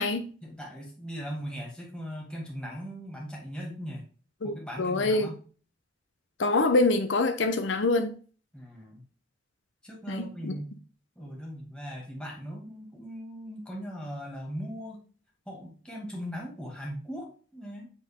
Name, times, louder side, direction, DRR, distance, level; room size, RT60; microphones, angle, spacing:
voice 1, 0.4-4.0 4.4-5.4 8.5-9.0 9.8-10.8 11.2-15.0 15.5-17.9, equal, 5° left, 2.3 m, -39 dB
voice 2, 4.4-5.3 6.4-8.1 10.1-10.5, left 2 dB, 80° left, 0.8 m, -25 dB
8.0 x 3.9 x 3.7 m
head